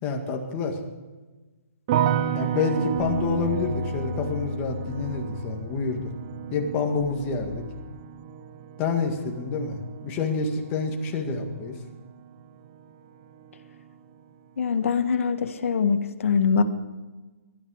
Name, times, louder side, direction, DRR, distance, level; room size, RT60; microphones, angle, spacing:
voice 1, 0.0-0.8 2.3-6.1 6.5-7.6 8.8-11.7, left 4 dB, 20° left, 3 dB, 1.9 m, -28 dB
sound 1, 1.9-12.9 13.2-14.0, right 9 dB, 25° right, 0.7 m, -32 dB
sound 2, 2.9-8.0, left 7 dB, 35° left, 0.7 m, -37 dB
voice 2, 14.6-16.6, left 6 dB, 60° left, 8 dB, 1.6 m, -23 dB
19.5 x 12.5 x 4.9 m, 1.2 s
hypercardioid pair, 160°, 8 cm